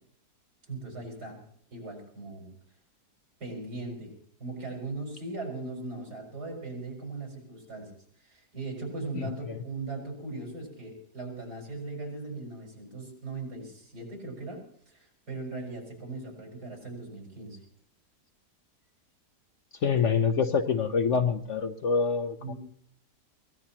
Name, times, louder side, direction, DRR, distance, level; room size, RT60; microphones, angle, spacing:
voice 1, 0.7-1.4 1.7-2.5 3.4-4.1 4.4-7.9 8.2-17.6 22.4-22.6, right 3 dB, 75° right, 0 dB, 5.9 m, -39 dB
voice 2, 9.1-9.6 19.8-22.5, left 5 dB, 55° left, 8 dB, 1.1 m, -26 dB
23.0 x 18.0 x 2.9 m, 0.63 s
omnidirectional pair, 1.7 m